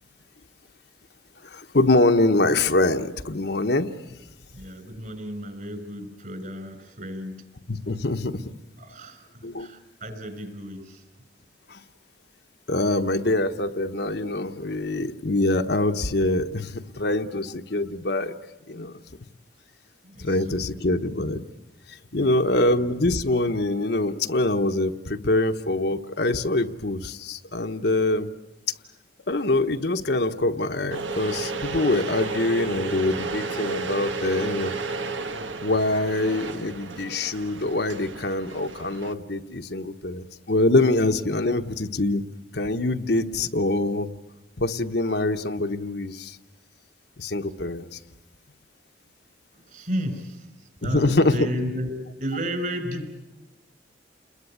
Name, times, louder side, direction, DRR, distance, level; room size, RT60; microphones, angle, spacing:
voice 1, 1.4-3.9 7.7-8.4 9.4-9.7 11.7-11.8 12.7-18.3 18.7-19.0 20.2-21.4 21.9-28.3 29.3-34.8 35.6-42.2 42.5-44.1 44.6-46.4 47.2-48.0 50.8-51.4, left 2 dB, 60° left, 6 dB, 1.1 m, -24 dB
voice 2, 4.5-7.4 8.8-11.1 16.8-17.1 20.0-20.8 22.1-22.5 49.5-53.2, equal, 45° right, 8 dB, 5.2 m, -33 dB
sound 1, 30.9-39.1, right 3 dB, 90° right, 1.7 m, -32 dB
29.5 x 21.5 x 8.6 m, 1.0 s
head